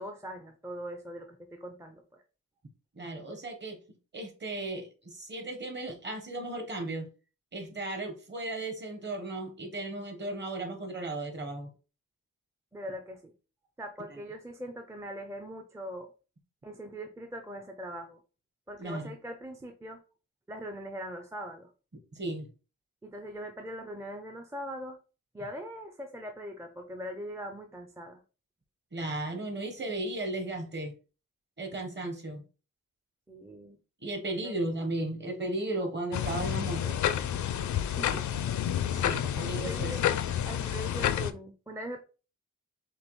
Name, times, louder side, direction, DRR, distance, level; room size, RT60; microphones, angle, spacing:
voice 1, 0.0-2.2 12.7-13.3 13.8-16.1 16.6-18.2 18.7-20.0 20.5-21.7 23.0-25.0 25.3-28.2 33.3-33.8 34.2-34.5 37.7-38.4 38.9-40.0 40.5-42.0, equal, 10° right, 5 dB, 0.4 m, -41 dB
voice 2, 2.9-3.8 4.1-7.1 7.5-11.7 14.1-14.2 18.8-19.1 22.1-22.5 28.9-30.9 31.6-32.4 34.0-37.0 38.9-40.0, right 2 dB, 35° right, 4 dB, 1.0 m, -35 dB
sound 1, 36.1-41.3, left 10 dB, 75° left, 0.5 m, -29 dB
6.5 x 2.3 x 3.0 m, 0.35 s
wide cardioid pair, 150°, 29 cm